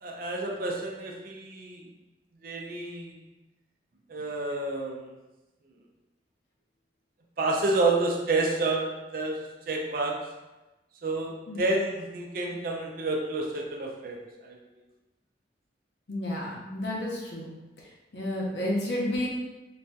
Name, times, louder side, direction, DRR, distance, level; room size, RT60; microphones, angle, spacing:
voice 1, 0.0-1.9 2.4-3.2 4.1-5.1 7.4-9.4 9.7-10.2 11.0-14.6, right 2 dB, 50° right, 0 dB, 0.5 m, -29 dB
voice 2, 16.1-17.5 18.1-19.3, left 1 dB, 75° left, -3 dB, 0.8 m, -31 dB
4.0 x 2.7 x 2.3 m, 1.1 s
head